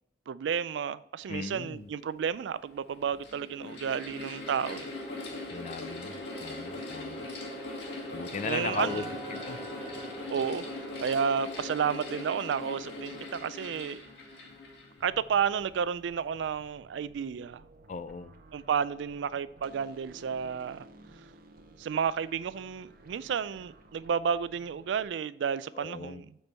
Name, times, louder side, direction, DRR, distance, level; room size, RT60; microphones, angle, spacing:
voice 1, 0.3-4.9 8.4-9.1 10.3-10.7 11.0-14.0 15.0-17.6 18.5-20.9 21.8-26.4, right 7 dB, 80° right, 0.3 m, -31 dB
voice 2, 1.3-1.9 5.5-7.3 8.1-9.0 9.3-9.6 17.9-18.3 25.8-26.2, left 5 dB, 40° left, 0.3 m, -38 dB
Mechanical fan, 1.9-2.0 2.9-15.5, left 2 dB, 70° left, 2.2 m, -40 dB
sound 1, 7.3-12.3, right 3 dB, 20° left, 1.6 m, -48 dB
sound 2, 15.0-25.1, right 1 dB, 55° right, 0.8 m, -55 dB
7.9 x 4.4 x 3.4 m
head